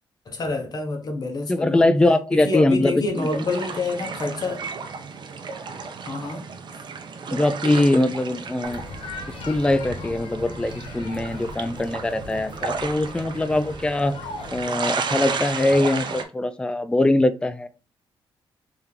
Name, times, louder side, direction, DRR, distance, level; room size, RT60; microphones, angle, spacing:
voice 1, 0.3-1.8 2.3-4.6 6.1-6.4, left 3 dB, 45° left, 1.1 m, -27 dB
voice 2, 1.5-3.3 7.3-8.8 9.4-14.1 14.5-17.7, left 2 dB, 10° left, 0.3 m, -22 dB
sound 1, 3.2-16.2, right 5 dB, 55° right, 0.6 m, -33 dB
sound 2, 8.6-14.6, left 3 dB, 85° left, 1.0 m, -39 dB
3.4 x 2.9 x 3.6 m
cardioid pair, 110°, 9 cm